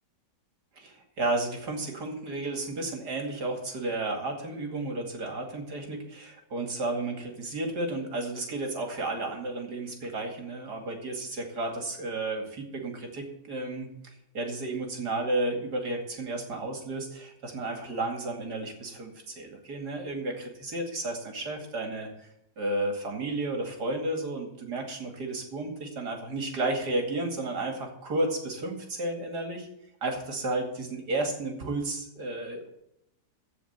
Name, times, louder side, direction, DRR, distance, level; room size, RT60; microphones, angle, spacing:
voice 1, 0.8-22.3 22.6-29.7 30.0-32.7, right 2 dB, 65° right, 3 dB, 2.9 m, -32 dB
15.0 x 5.1 x 8.7 m, 0.77 s
omnidirectional pair, 1.9 m